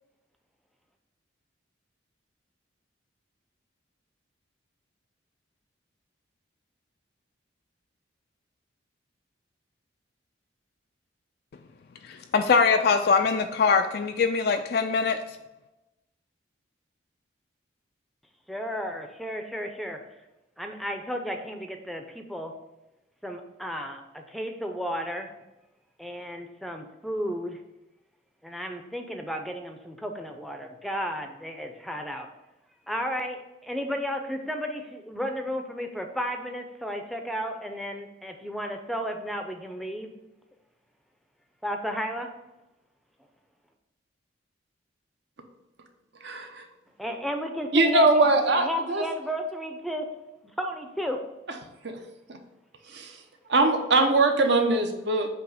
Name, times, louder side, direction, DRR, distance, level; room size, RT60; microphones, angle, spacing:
voice 1, 12.0-15.2, left 5 dB, 50° left, 0.3 m, -22 dB
voice 2, 18.5-20.0 20.6-22.5 23.2-25.3 26.0-27.6 28.4-32.3 32.9-40.1 41.6-42.3 47.0-48.2 48.6-50.1 50.6-51.2, equal, ahead, 0.5 m, -33 dB
voice 3, 46.2-46.6 47.7-49.0 51.8-52.0 52.9-53.2 53.5-55.3, right 2 dB, 60° right, 0.8 m, -22 dB
7.6 x 2.9 x 4.9 m
head